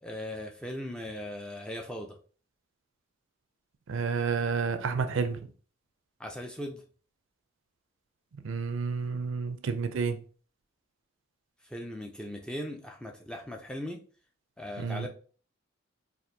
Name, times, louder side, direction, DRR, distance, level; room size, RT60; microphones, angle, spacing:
voice 1, 0.0-2.2 6.2-6.8 11.6-14.0 14.6-15.1, left 1 dB, 5° left, 0.3 m, -38 dB
voice 2, 3.9-5.4 8.4-10.2 14.8-15.1, right 5 dB, 65° right, 0.4 m, -30 dB
4.2 x 2.5 x 2.6 m
head